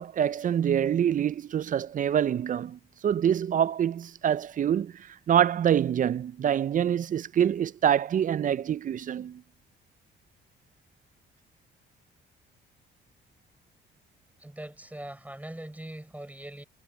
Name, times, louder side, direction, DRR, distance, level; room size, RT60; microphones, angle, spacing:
voice 1, 0.0-9.4, right 9 dB, 40° right, 0.4 m, -26 dB
voice 2, 14.4-16.6, right 1 dB, 10° right, 6.4 m, -41 dB
cardioid pair, 90°, 20 cm